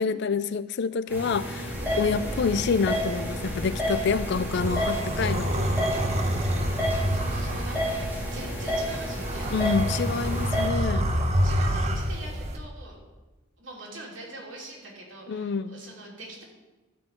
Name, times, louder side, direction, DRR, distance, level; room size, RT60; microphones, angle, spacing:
voice 1, 0.0-5.6 9.5-11.1 15.3-15.8, left 5 dB, 60° left, 15 dB, 0.4 m, -27 dB
sound 1, 1.1-10.7, equal, 10° right, 2.5 m, -31 dB
sound 2, 1.7-12.6, equal, 35° right, 1.0 m, -29 dB
voice 2, 7.1-9.5 10.7-13.0 13.6-16.4, right 2 dB, 75° right, -3 dB, 3.1 m, -44 dB
12.5 x 4.7 x 7.3 m, 1.2 s
head